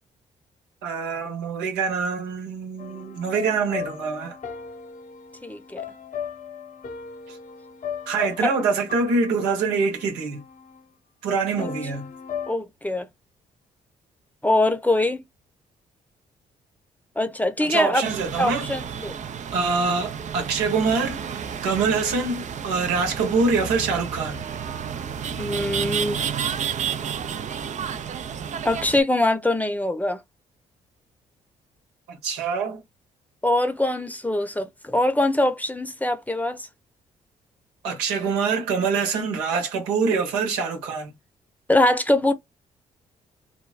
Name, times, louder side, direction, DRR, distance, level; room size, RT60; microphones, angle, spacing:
voice 1, 0.8-4.4 7.3-7.4 8.1-10.4 11.2-12.1 17.6-18.7 19.5-21.2 21.6-24.4 32.1-32.8 37.8-41.1, right 4 dB, 85° right, 1.0 m, -25 dB
sound 1, 2.8-10.8 11.6-12.5, left 7 dB, 50° left, 0.8 m, -37 dB
voice 2, 5.4-5.9 8.4-8.5 11.6-11.7 12.5-13.1 14.4-15.2 17.2-18.0 18.4-19.1 25.4-26.2 28.6-30.2 33.4-36.7 41.7-42.3, left 1 dB, 10° left, 0.8 m, -23 dB
sound 2, 18.0-29.0, right 7 dB, 45° right, 0.5 m, -31 dB
3.3 x 2.2 x 2.4 m
hypercardioid pair, 50°, 17 cm